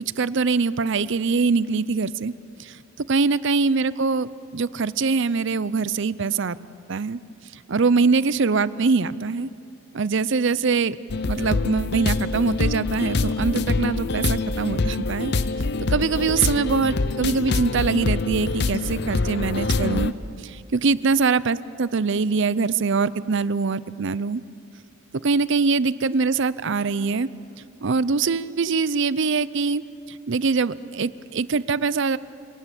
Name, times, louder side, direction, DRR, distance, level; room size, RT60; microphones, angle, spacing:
voice 1, 0.2-2.3 2.6-2.8 3.1-6.6 6.9-7.2 7.7-9.5 9.9-11.0 11.3-15.3 15.9-20.1 20.4-24.4 25.2-27.3 27.8-29.8 30.1-32.2, right 4 dB, 55° right, 17 dB, 0.6 m, -23 dB
sound 1, 11.1-20.1, left 3 dB, 50° left, 0.7 m, -25 dB
28.5 x 18.5 x 8.3 m, 2.5 s
head